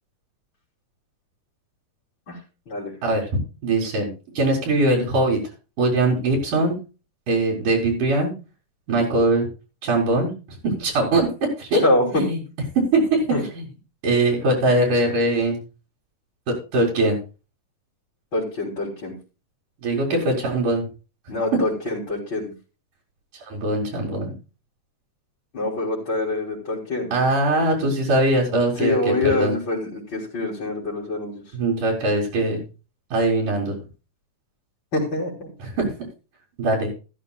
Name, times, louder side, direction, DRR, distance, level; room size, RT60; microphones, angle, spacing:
voice 1, 3.0-4.1 4.3-5.4 5.8-6.8 7.3-8.3 8.9-9.5 9.8-10.3 10.6-11.8 12.1-12.4 12.7-13.2 13.5-13.7 14.0-15.6 16.5-17.2 19.8-20.9 23.5-24.3 27.1-29.0 29.2-29.5 31.5-32.6 33.1-33.7 35.6-35.9 36.6-36.9, right 2 dB, 75° right, -4 dB, 5.1 m, -21 dB
voice 2, 11.8-12.2 13.3-13.4 18.3-19.2 21.3-22.5 25.5-27.1 28.8-31.3 34.9-35.5, left 2 dB, 35° left, -5 dB, 4.1 m, -25 dB
14.0 x 13.5 x 2.4 m, 0.32 s
omnidirectional pair, 3.8 m